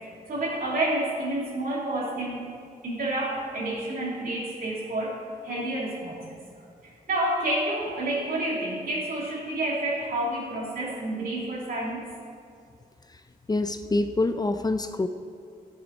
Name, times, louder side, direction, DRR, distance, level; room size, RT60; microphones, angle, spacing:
voice 1, 0.3-2.5 2.8-6.4 7.1-12.1, right 1 dB, 70° right, -4 dB, 3.0 m, -29 dB
voice 2, 13.5-15.1, left 2 dB, 25° left, 9 dB, 0.6 m, -26 dB
12.5 x 10.0 x 4.1 m, 2.3 s
cardioid pair, 75°, 16 cm